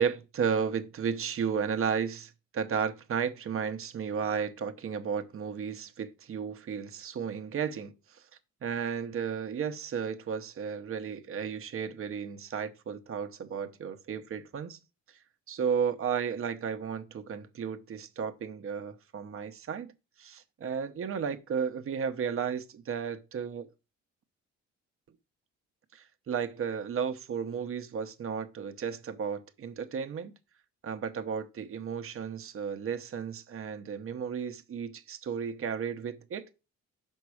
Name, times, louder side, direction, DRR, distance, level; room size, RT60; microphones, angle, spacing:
voice 1, 0.0-8.2 8.6-14.8 15.5-19.9 20.2-23.7 25.9-30.3 30.8-36.4, right 7 dB, 45° right, 0.8 m, -33 dB
5.9 x 5.4 x 4.8 m
cardioid pair, 90°, 30 cm